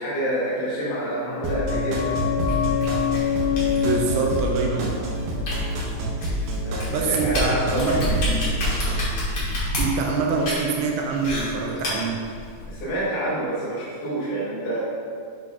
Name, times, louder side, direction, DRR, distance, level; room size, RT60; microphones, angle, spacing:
voice 1, 0.0-2.1 6.6-7.9 12.7-14.8, right 1 dB, 70° left, -11 dB, 2.7 m, -28 dB
sound 1, 0.9-6.3 6.6-6.7, left 8 dB, 85° left, 2.5 m, -27 dB
sound 2, 1.4-9.1, right 1 dB, 70° right, 2.0 m, -28 dB
sound 3, 2.5-12.8, left 1 dB, 45° left, 2.0 m, -30 dB
voice 2, 3.5-5.0 6.9-8.4 9.4-12.2, right 4 dB, 90° right, 0 dB, 2.5 m, -25 dB
8.3 x 5.9 x 2.4 m, 2.2 s
omnidirectional pair, 4.2 m